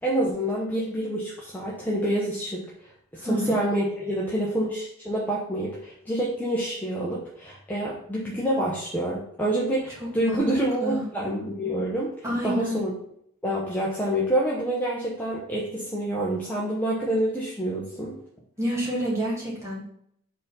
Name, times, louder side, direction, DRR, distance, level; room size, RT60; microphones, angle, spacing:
voice 1, 0.0-2.7 3.1-12.1 12.4-12.9 13.4-18.2, right 1 dB, 10° left, -6 dB, 0.9 m, -27 dB
voice 2, 3.2-3.5 10.2-10.4 10.8-11.0 12.2-12.8 18.6-19.8, equal, 15° right, -6 dB, 1.9 m, -27 dB
4.8 x 4.0 x 5.5 m, 0.69 s
head